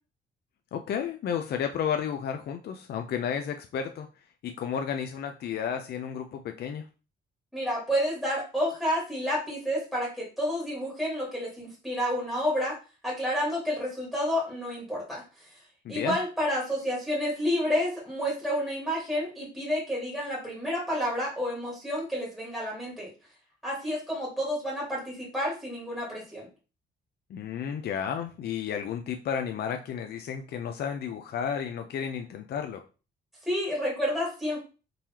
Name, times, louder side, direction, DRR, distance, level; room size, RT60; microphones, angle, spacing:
voice 1, 0.7-4.1 4.4-6.9 15.8-16.2 27.3-32.8, left 8 dB, 55° left, 6 dB, 0.4 m, -32 dB
voice 2, 7.5-12.8 13.0-15.2 15.9-23.1 23.6-26.5 33.5-34.6, equal, 5° right, -5 dB, 1.4 m, -30 dB
3.8 x 3.0 x 2.8 m, 0.34 s
cardioid pair, 130°, 20 cm